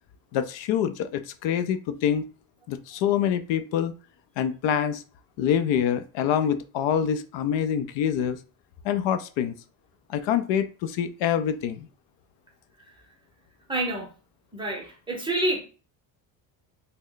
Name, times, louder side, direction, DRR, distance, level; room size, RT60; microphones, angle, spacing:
voice 1, 0.3-2.2 2.7-3.9 4.4-5.0 5.4-8.4 8.8-9.5 10.1-11.9, left 9 dB, 70° left, 11 dB, 0.5 m, -25 dB
voice 2, 13.7-14.1 14.5-15.6, right 1 dB, 10° right, -1 dB, 0.6 m, -28 dB
3.1 x 2.1 x 3.8 m, 0.36 s
cardioid pair, 165°, 46 cm